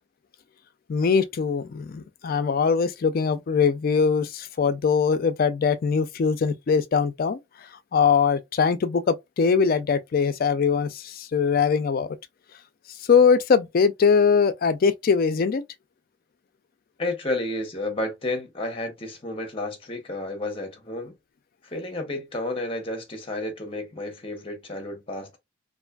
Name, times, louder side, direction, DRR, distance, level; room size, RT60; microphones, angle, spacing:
voice 1, 0.9-7.4 7.9-12.2 13.1-15.6, left 6 dB, 50° left, 0.3 m, -22 dB
voice 2, 17.0-21.1 21.6-25.4, left 1 dB, 30° left, 0.8 m, -31 dB
2.6 x 2.4 x 2.2 m
head